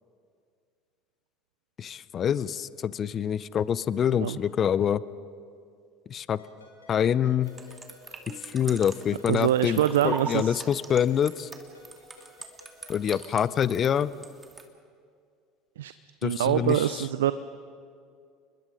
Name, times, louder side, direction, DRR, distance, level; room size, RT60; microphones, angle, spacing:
voice 1, 1.8-5.0 6.1-6.4 6.9-7.5 8.4-9.8 10.0-11.5 12.9-14.1 16.2-16.9, left 9 dB, 40° left, 19 dB, 0.6 m, -26 dB
Ringtone, 6.4-13.2, left 2 dB, 90° left, 4.4 m, -54 dB
sound 1, 7.5-14.6, right 3 dB, 20° right, 2.4 m, -42 dB
voice 2, 9.3-10.6 15.8-15.9 16.2-17.3, right 11 dB, 75° right, 14 dB, 0.5 m, -24 dB
30.0 x 21.5 x 5.3 m, 2.3 s
hypercardioid pair, 70°, 0 cm